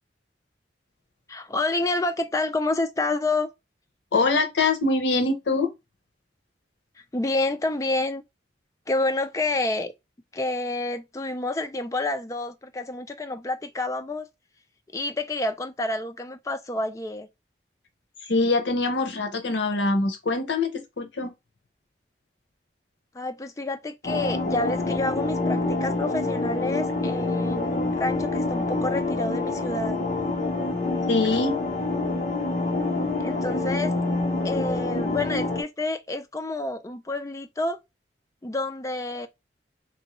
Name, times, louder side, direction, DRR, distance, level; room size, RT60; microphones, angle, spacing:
voice 1, 1.3-3.5 7.1-8.2 8.9-9.9 10.3-14.3 14.9-17.3 23.1-30.0 33.2-33.9 34.4-37.8 38.4-39.3, left 2 dB, 20° left, 0.4 m, -28 dB
voice 2, 4.1-5.7 18.2-21.3 31.1-31.6, left 3 dB, 80° left, 0.8 m, -24 dB
sound 1, 24.0-35.6, left 2 dB, 45° left, 0.8 m, -26 dB
3.0 x 2.6 x 3.0 m
head